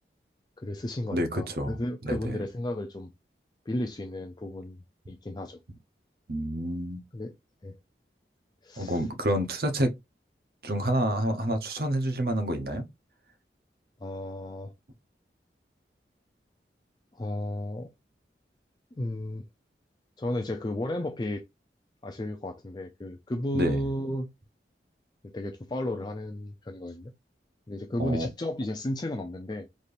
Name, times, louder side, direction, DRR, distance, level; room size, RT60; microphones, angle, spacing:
voice 1, 0.6-3.1 3.7-5.6 7.1-7.3 7.6-7.8 8.6-9.1 14.0-14.7 17.1-17.9 19.0-19.4 20.2-21.4 22.0-24.3 25.2-27.1 27.7-29.7, left 1 dB, 25° left, 0.4 m, -33 dB
voice 2, 1.1-2.4 6.3-7.0 8.8-9.9 10.6-12.9 23.5-23.8 28.0-28.3, equal, 55° right, 0.8 m, -28 dB
4.1 x 3.4 x 2.5 m
head